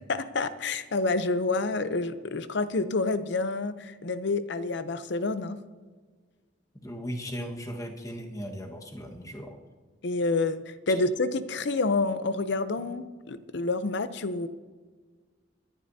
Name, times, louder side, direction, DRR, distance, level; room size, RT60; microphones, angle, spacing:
voice 1, 0.0-5.6 10.0-14.5, left 3 dB, 65° left, 12 dB, 0.7 m, -28 dB
voice 2, 6.8-9.6 12.8-12.9, equal, 20° left, 2 dB, 1.5 m, -37 dB
23.5 x 11.0 x 2.8 m, 1.5 s
head